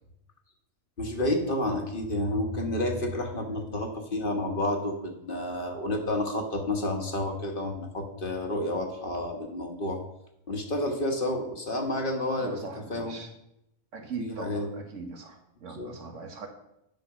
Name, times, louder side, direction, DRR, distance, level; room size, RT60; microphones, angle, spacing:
voice 1, 1.0-10.0 10.5-12.6 12.9-13.2 14.2-14.7 15.7-15.9, left 1 dB, 45° left, 3 dB, 1.4 m, -30 dB
voice 2, 12.4-13.3 13.9-16.5, right 4 dB, 75° right, 4 dB, 1.6 m, -40 dB
9.3 x 6.0 x 5.8 m, 0.84 s
omnidirectional pair, 1.3 m